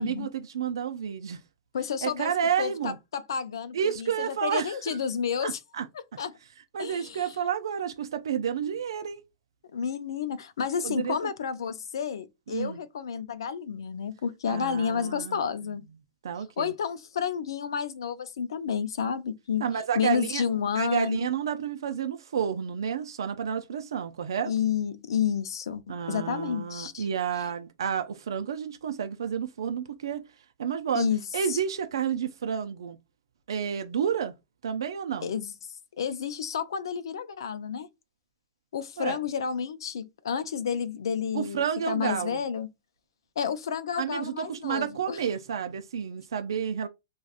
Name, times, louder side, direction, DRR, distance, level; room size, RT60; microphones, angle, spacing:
voice 1, 0.0-1.4 2.0-3.0 3.7-5.0 5.4-5.9 6.7-9.2 10.8-11.2 12.5-12.8 14.5-15.4 16.2-16.7 19.6-20.4 20.7-24.5 25.9-30.2 30.6-31.1 31.3-33.0 33.5-34.3 34.6-35.3 39.0-39.2 41.3-42.4 44.0-46.9, right 8 dB, 85° right, 0.4 m, -30 dB
voice 2, 1.7-2.3 2.6-5.6 6.2-6.3 6.8-7.3 9.7-15.9 16.6-19.6 19.9-21.3 24.4-27.1 30.9-31.2 31.5-31.6 35.2-35.5 36.0-37.9 38.7-42.7 43.4-45.2, left 7 dB, 85° left, 0.5 m, -30 dB
3.4 x 2.3 x 2.4 m
hypercardioid pair, 140°, 2 cm